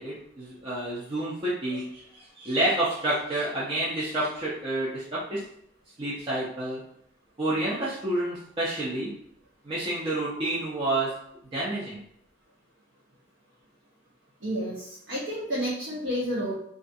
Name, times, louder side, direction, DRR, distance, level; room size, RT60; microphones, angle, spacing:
voice 1, 0.0-5.4 6.0-6.8 7.4-9.1 9.6-11.1 11.5-12.0, right 1 dB, 25° right, -8 dB, 0.5 m, -29 dB
voice 2, 14.4-16.5, equal, 70° right, -7 dB, 0.7 m, -30 dB
2.4 x 2.3 x 2.5 m, 0.72 s
head